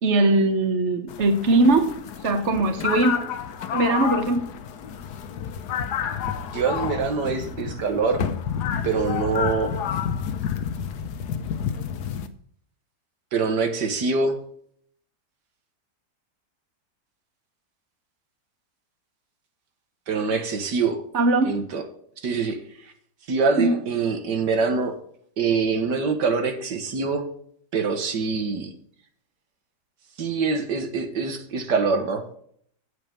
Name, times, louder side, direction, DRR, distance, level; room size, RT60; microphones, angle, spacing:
voice 1, 0.0-1.9 2.2-3.1 3.7-4.4 21.1-21.5 23.6-23.7, right 2 dB, 45° right, 1.6 m, -20 dB
sound 1, 1.1-12.3, left 8 dB, 75° left, 1.4 m, -30 dB
voice 2, 6.5-8.3 8.8-9.7 13.3-14.4 20.1-21.0 21.4-21.8 22.2-22.9 23.3-25.0 25.4-27.3 27.7-28.7 30.2-32.3, right 4 dB, 80° right, 2.0 m, -24 dB
8.6 x 7.9 x 5.3 m
omnidirectional pair, 1.8 m